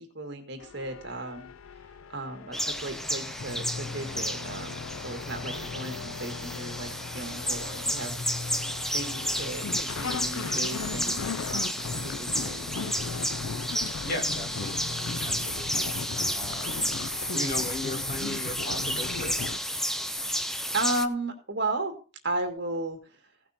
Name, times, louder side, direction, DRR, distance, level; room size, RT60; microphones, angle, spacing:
voice 1, 0.0-1.5 2.1-8.2 8.9-12.7 20.7-21.9 22.2-23.0, right 2 dB, 55° right, 5 dB, 1.9 m, -35 dB
sound 1, 0.6-19.6, left 5 dB, 85° left, 0.6 m, -37 dB
sound 2, 2.5-21.1, equal, ahead, 0.5 m, -32 dB
voice 2, 14.0-15.9 16.3-19.3, left 1 dB, 40° left, 3 dB, 2.3 m, -37 dB
16.0 x 5.9 x 4.3 m, 0.35 s
head